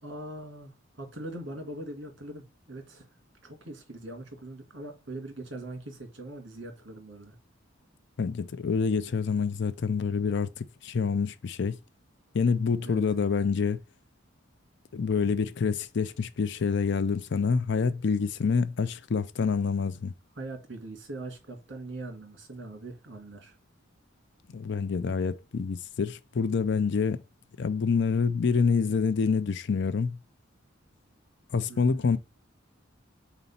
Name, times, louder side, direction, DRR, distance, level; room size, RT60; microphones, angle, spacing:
voice 1, 0.0-3.1 3.4-7.4 12.8-13.1 20.4-23.6 31.7-32.1, right 2 dB, 65° right, 2.0 m, -41 dB
voice 2, 8.2-11.8 12.3-13.8 14.9-20.1 24.5-27.2 27.6-30.2 31.5-32.2, left 5 dB, 60° left, 0.5 m, -27 dB
4.2 x 4.1 x 5.5 m
head